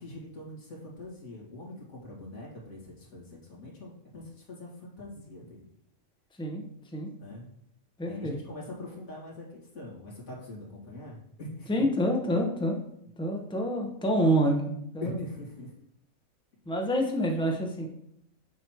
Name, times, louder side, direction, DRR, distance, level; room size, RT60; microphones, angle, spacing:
voice 1, 0.0-5.7 7.2-7.5 8.0-11.7 12.3-12.4 15.0-15.7, left 1 dB, 80° left, -4 dB, 2.4 m, -42 dB
voice 2, 8.0-8.4 11.7-12.8 13.2-15.2 16.7-17.9, equal, 5° left, 1 dB, 0.7 m, -27 dB
7.3 x 3.0 x 5.7 m, 0.74 s
omnidirectional pair, 1.4 m